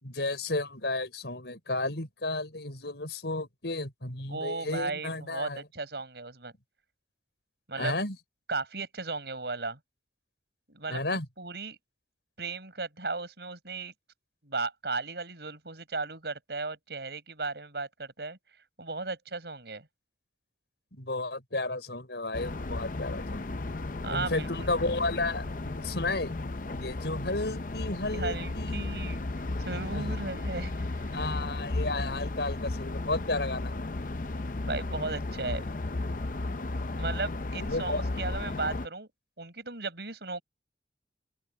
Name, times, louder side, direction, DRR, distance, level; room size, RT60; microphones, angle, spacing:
voice 1, 0.0-5.7 7.7-8.1 10.9-11.3 20.9-23.4 24.1-26.4 26.7-28.9 29.9-30.2 31.1-33.9 37.7-38.0, left 2 dB, 80° left, 5.1 m, -33 dB
voice 2, 4.3-6.5 7.7-7.9 8.5-9.8 10.7-11.8 12.4-13.9 14.4-18.4 18.8-19.9 24.0-24.7 28.1-31.2 34.6-35.6 37.0-39.1 39.4-40.4, right 3 dB, 75° right, 4.7 m, -36 dB
sound 1, 22.3-38.9, left 2 dB, 50° left, 0.7 m, -34 dB
open air
head